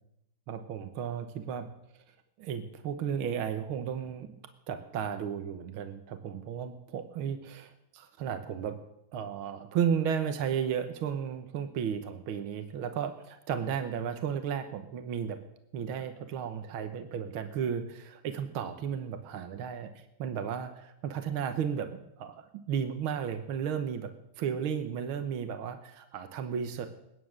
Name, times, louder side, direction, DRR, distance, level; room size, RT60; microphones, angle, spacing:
voice 1, 0.5-1.7 2.4-4.4 4.7-8.8 9.1-15.4 15.7-19.9 20.2-24.1 24.4-26.9, right 8 dB, 75° right, 8 dB, 1.9 m, -34 dB
21.5 x 9.4 x 6.5 m, 0.83 s
omnidirectional pair, 2.3 m